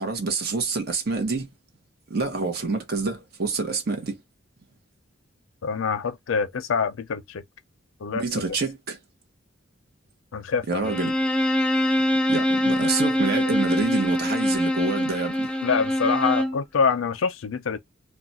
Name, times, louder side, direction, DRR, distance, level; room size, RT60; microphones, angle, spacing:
voice 1, 0.0-1.5 2.1-4.2 8.1-9.0 10.7-11.1 12.3-15.5, right 4 dB, 50° right, 0.8 m, -27 dB
voice 2, 5.6-7.4 8.0-8.6 10.3-11.0 15.6-17.8, left 5 dB, 80° left, 0.5 m, -26 dB
Bowed string instrument, 10.8-16.6, left 1 dB, 5° left, 0.3 m, -24 dB
2.3 x 2.2 x 3.9 m
head